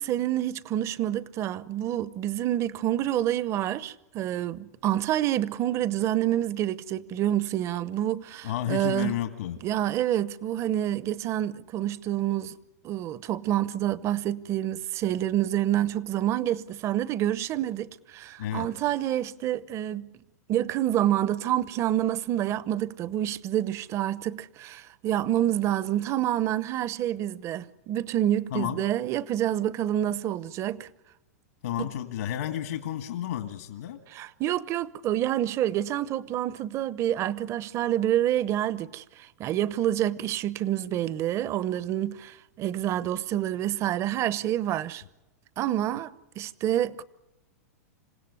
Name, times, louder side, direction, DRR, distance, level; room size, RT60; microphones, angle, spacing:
voice 1, 0.0-9.2 9.6-12.6 12.8-20.1 20.5-30.9 31.8-31.9 34.1-45.0 45.6-47.0, right 12 dB, 35° right, 0.9 m, -28 dB
voice 2, 8.4-9.6 18.4-18.7 28.5-28.8 31.6-34.0, left 11 dB, 70° left, 2.0 m, -31 dB
27.0 x 16.5 x 9.7 m
hypercardioid pair, 115°, 8 cm